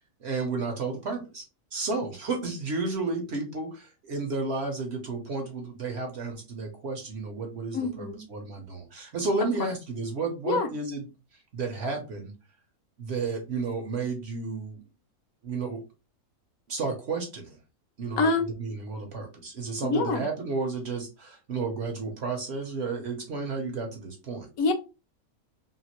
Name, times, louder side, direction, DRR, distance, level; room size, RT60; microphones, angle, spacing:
voice 1, 0.2-1.4 1.7-11.1 11.5-12.3 13.0-14.8 15.4-15.8 16.7-17.6 18.0-18.3 18.6-24.5, right 3 dB, 55° right, 0.8 m, -32 dB
voice 2, 7.7-8.2 9.6-9.7 10.5-10.7 18.2-18.5 19.9-20.3 24.6-24.7, left 3 dB, 75° left, 1.1 m, -25 dB
2.8 x 2.4 x 2.9 m
omnidirectional pair, 1.6 m